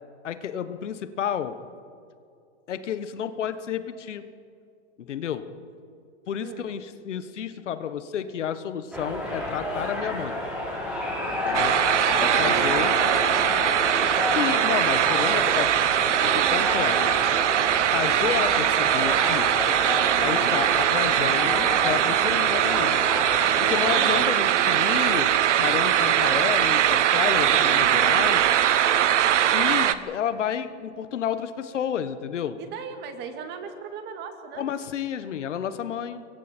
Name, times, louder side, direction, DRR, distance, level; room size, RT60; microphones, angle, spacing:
voice 1, 0.2-1.6 2.7-4.2 5.0-5.5 6.3-10.4 11.4-11.8 12.2-12.9 14.3-15.8 16.0-17.0 17.4-17.5 17.9-19.5 20.2-23.0 23.6-25.3 25.6-28.5 29.5-32.6 34.5-36.3, left 9 dB, 90° left, 11 dB, 1.4 m, -30 dB
sound 1, 8.9-24.0, left 1 dB, 5° right, 5.8 m, -30 dB
sound 2, 11.5-29.9, right 10 dB, 85° right, 1.1 m, -21 dB
voice 2, 12.2-14.5 32.6-34.7, right 6 dB, 30° right, 6 dB, 2.2 m, -37 dB
27.0 x 23.0 x 4.5 m, 2.4 s
hypercardioid pair, 150°, 35 cm